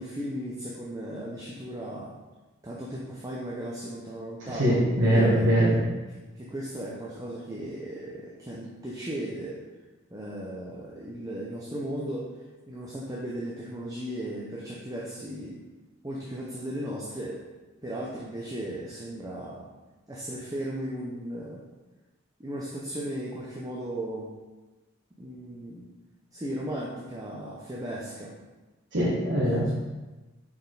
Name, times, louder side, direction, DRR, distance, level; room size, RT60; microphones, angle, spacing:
voice 1, 0.0-2.2 2.6-5.5 6.3-9.6 10.1-12.3 12.7-15.6 16.0-17.4 17.8-19.7 20.1-21.6 22.4-24.3 25.2-25.9 26.3-28.3 29.6-29.7, right 1 dB, 15° right, -4 dB, 0.7 m, -36 dB
voice 2, 4.5-5.8 28.9-29.7, right 1 dB, 65° right, -8 dB, 1.3 m, -22 dB
5.7 x 4.4 x 3.9 m, 1.2 s
head